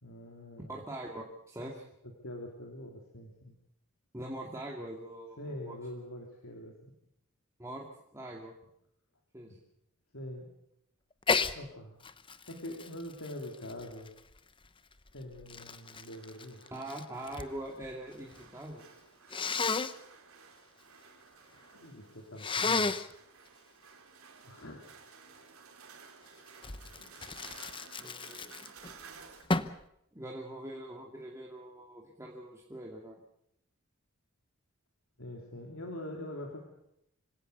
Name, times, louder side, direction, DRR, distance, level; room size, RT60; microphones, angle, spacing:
voice 1, 0.0-0.8 2.0-3.6 5.4-6.9 9.5-9.6 10.1-10.5 11.5-12.0 12.5-14.1 15.1-16.6 21.5-22.9 24.4-24.8 27.0-27.1 35.2-36.6, left 1 dB, 70° left, 1 dB, 3.2 m, -44 dB
voice 2, 0.7-1.8 4.1-5.8 7.6-7.9 8.1-8.5 9.3-9.6 16.7-18.8 28.0-28.7 30.1-33.2, right 1 dB, 15° right, -1 dB, 2.5 m, -43 dB
Sneeze, 11.2-11.6 12.0-14.4 15.1-17.5 17.8-18.4 19.3-19.9 22.4-23.1 26.6-28.9 29.5-29.8, left 4 dB, 25° left, 0.9 m, -33 dB
sound 1, 15.7-29.4, right 5 dB, 80° right, 3.6 m, -55 dB
25.5 x 17.5 x 6.9 m, 0.78 s
head